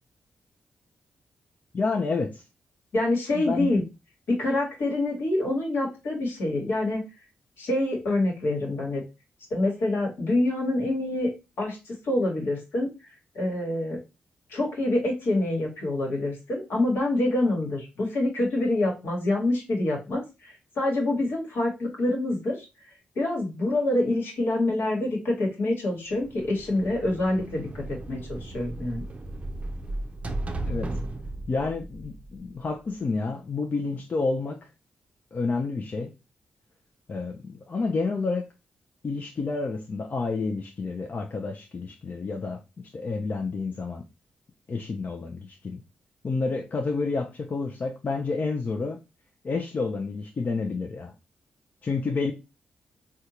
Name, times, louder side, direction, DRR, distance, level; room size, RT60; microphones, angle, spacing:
voice 1, 1.7-2.4 3.3-3.7 30.6-30.9 31.5-34.7 35.3-36.1 37.1-38.4 39.0-42.6 42.9-44.0 44.7-45.8 46.2-49.0 49.4-51.1 51.8-52.3, left 4 dB, 50° left, 0.5 m, -29 dB
voice 2, 2.9-3.8 4.3-7.0 7.6-9.0 9.5-12.9 13.3-14.0 14.5-22.6 23.1-29.0, left 2 dB, 75° left, 1.3 m, -26 dB
sound 1, 26.1-32.9, right 2 dB, 35° right, 0.5 m, -36 dB
3.5 x 2.2 x 2.9 m
supercardioid pair, 45°, 4 cm